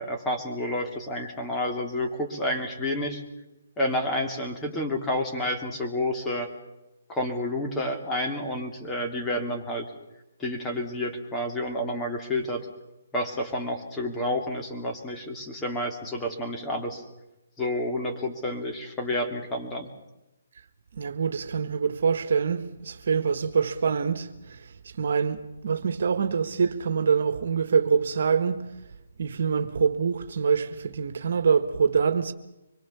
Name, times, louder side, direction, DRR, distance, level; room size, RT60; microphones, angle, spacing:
voice 1, 0.0-3.2 3.8-6.5 7.1-9.9 10.4-12.7 13.1-17.0 17.6-19.9, left 1 dB, 15° left, 3.2 m, -29 dB
voice 2, 20.9-28.6 29.2-32.3, right 6 dB, 65° right, 1.6 m, -25 dB
25.0 x 22.5 x 7.1 m
hypercardioid pair, 155°, 0 cm